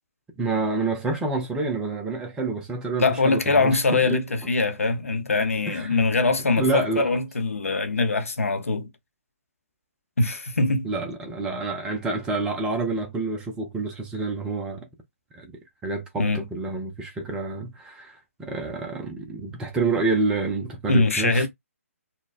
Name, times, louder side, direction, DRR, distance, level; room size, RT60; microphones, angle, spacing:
voice 1, 0.4-4.2 5.7-6.2 6.6-7.1 10.8-14.9 15.3-15.5 15.8-21.5, right 3 dB, 10° right, 0.6 m, -28 dB
voice 2, 3.0-8.9 10.2-10.9 16.2-16.5 20.9-21.5, left 3 dB, 65° left, 0.8 m, -22 dB
4.0 x 2.2 x 2.4 m
figure-of-eight pair, 135°, 8 cm